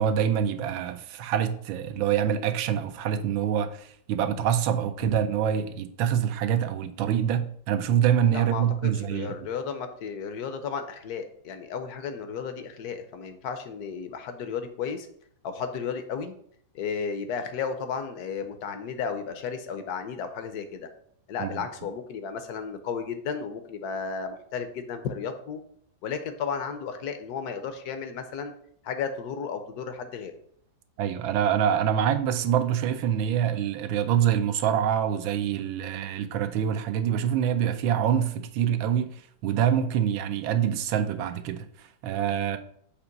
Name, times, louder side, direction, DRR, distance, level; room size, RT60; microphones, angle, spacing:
voice 1, 0.0-9.4 21.4-21.6 31.0-42.6, right 9 dB, 90° right, 1.4 m, -25 dB
voice 2, 8.3-15.1 15.4-16.3 16.7-20.9 21.3-25.6 26.0-28.5 28.8-30.3, left 6 dB, 65° left, 1.0 m, -33 dB
6.7 x 2.9 x 5.8 m
omnidirectional pair, 2.1 m